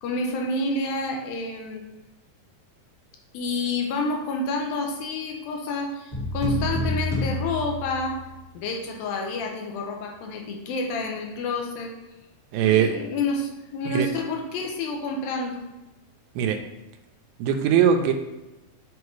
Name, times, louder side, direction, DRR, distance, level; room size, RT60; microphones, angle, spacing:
voice 1, 0.0-1.8 3.3-8.2 8.5-11.9 12.6-15.6, left 2 dB, 80° left, 2 dB, 2.5 m, -29 dB
sound 1, 6.1-8.4, left 1 dB, 10° left, 0.7 m, -28 dB
voice 2, 12.5-13.0 13.9-14.1 16.4-16.6 17.4-18.1, right 8 dB, 85° right, 5 dB, 2.4 m, -20 dB
7.2 x 4.6 x 3.2 m, 1.0 s
omnidirectional pair, 4.3 m